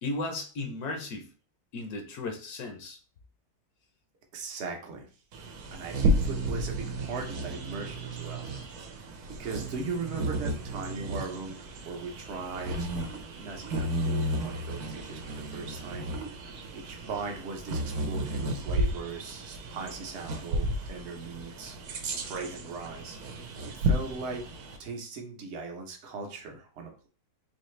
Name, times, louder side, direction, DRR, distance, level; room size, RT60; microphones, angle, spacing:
voice 1, 0.0-1.3 1.7-3.0 15.1-15.2 22.1-22.2, left 2 dB, 75° left, 4 dB, 1.2 m, -35 dB
voice 2, 4.3-5.1 5.7-8.5 9.3-13.0 13.3-16.1 16.4-23.2 23.6-24.4 24.8-27.1, right 4 dB, 50° right, 2 dB, 1.0 m, -39 dB
Bird vocalization bird call bird song, 5.3-24.8, right 1 dB, 75° right, 1.2 m, -33 dB
4.1 x 2.8 x 3.1 m, 0.40 s
omnidirectional pair, 1.6 m